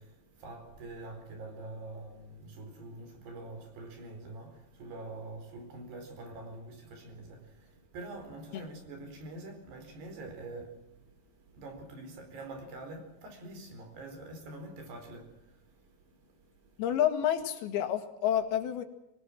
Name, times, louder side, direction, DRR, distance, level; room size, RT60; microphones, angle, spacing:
voice 1, 0.0-16.8, right 2 dB, 85° right, 6.5 m, -46 dB
voice 2, 16.8-18.8, left 10 dB, 75° left, 3.8 m, -29 dB
25.5 x 19.0 x 7.5 m
omnidirectional pair, 4.6 m